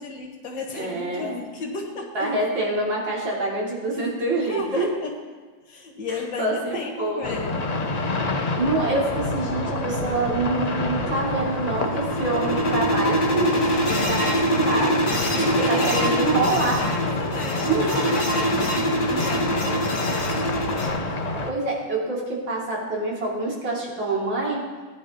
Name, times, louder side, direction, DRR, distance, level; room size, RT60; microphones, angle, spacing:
voice 1, 0.0-2.3 4.4-5.2 5.7-7.7 15.2-17.8 18.1-19.9, left 3 dB, 70° left, 1 dB, 2.1 m, -34 dB
voice 2, 0.7-1.4 2.1-4.9 6.4-7.2 8.6-13.7 14.0-15.0 15.6-16.8 17.6-18.1 21.4-24.6, right 2 dB, 75° right, -4 dB, 3.3 m, -26 dB
sound 1, 7.2-21.5, left 2 dB, 90° left, 0.3 m, -28 dB
sound 2, 11.5-20.9, equal, 30° left, 1.6 m, -24 dB
18.0 x 10.0 x 2.9 m, 1.4 s
omnidirectional pair, 2.1 m